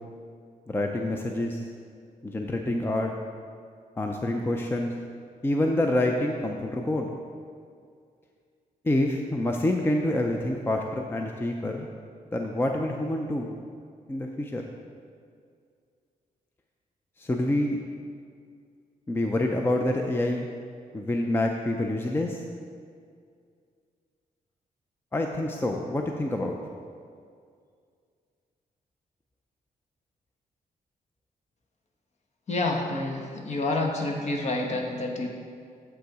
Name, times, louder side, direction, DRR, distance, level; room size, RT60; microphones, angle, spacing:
voice 1, 0.7-1.6 2.2-3.1 4.0-4.9 5.4-7.1 8.8-11.9 12.3-13.5 14.1-14.7 17.2-17.8 19.1-20.5 20.9-22.4 25.1-26.6, left 1 dB, 15° left, 2 dB, 0.5 m, -27 dB
voice 2, 32.5-35.3, left 2 dB, 50° left, 2 dB, 1.1 m, -28 dB
7.9 x 6.7 x 4.8 m, 2.2 s
wide cardioid pair, 145°, 15 cm